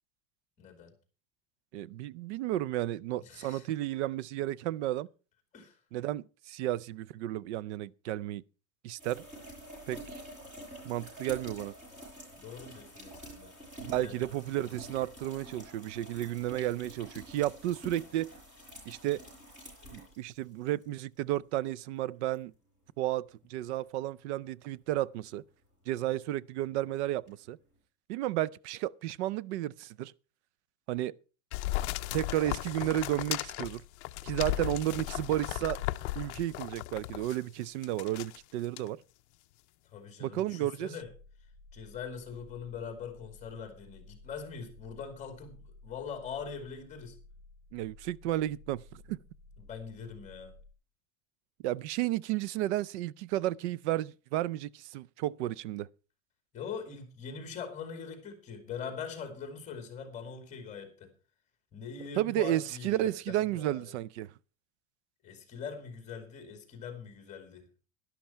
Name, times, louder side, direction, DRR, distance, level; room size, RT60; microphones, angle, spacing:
voice 1, 0.6-0.9 3.2-3.7 5.5-5.8 12.4-13.5 14.0-14.2 39.9-41.1 41.7-47.2 49.6-50.5 56.5-61.1 61.7-63.9 65.2-67.7, left 6 dB, 20° left, 2.6 m, -42 dB
voice 2, 1.7-5.1 5.9-8.4 8.8-9.2 9.9-10.2 10.8-11.7 13.8-18.3 18.9-19.2 19.9-22.5 23.0-25.4 25.9-27.6 28.1-30.1 30.9-31.1 32.1-33.8 34.2-35.8 36.2-39.0 40.2-40.9 47.7-49.2 51.6-55.9 62.2-64.3, right 14 dB, 60° right, 0.5 m, -32 dB
sound 1, 9.0-20.8 22.3-22.4 27.3-27.4, right 1 dB, 20° right, 7.0 m, -48 dB
sound 2, 31.5-37.4 37.8-38.4 38.8-38.9, left 18 dB, 55° left, 0.6 m, -36 dB
sound 3, 41.0-50.7, left 2 dB, 40° right, 6.8 m, -56 dB
11.5 x 11.5 x 4.4 m
supercardioid pair, 175°, 40 cm